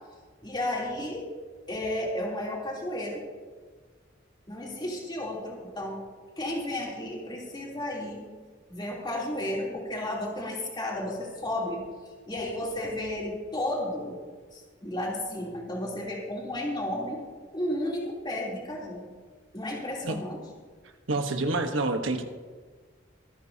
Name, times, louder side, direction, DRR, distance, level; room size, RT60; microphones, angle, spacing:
voice 1, 0.4-1.3 1.7-3.2 4.5-6.0 6.4-8.2 8.7-11.8 12.3-14.2 14.5-17.2 17.5-19.1 19.5-20.4, left 1 dB, 25° left, -3 dB, 3.3 m, -33 dB
voice 2, 21.1-22.2, right 2 dB, 90° right, 6 dB, 1.2 m, -27 dB
25.5 x 9.4 x 2.8 m, 1.5 s
head